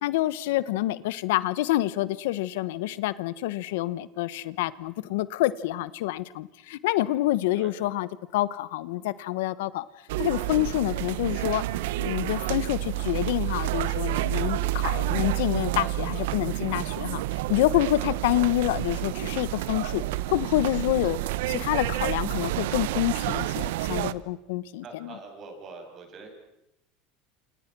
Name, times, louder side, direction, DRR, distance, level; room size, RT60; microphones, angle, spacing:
voice 1, 0.0-9.8 10.2-11.6 12.0-17.2 17.5-20.0 20.3-21.2 21.5-25.1, left 16 dB, 85° left, 1.1 m, -27 dB
sound 1, 10.1-24.1, right 16 dB, 85° right, 0.9 m, -29 dB
voice 2, 24.8-26.3, right 4 dB, 35° right, 8.0 m, -44 dB
28.5 x 28.0 x 6.2 m
supercardioid pair, 145°, 0 cm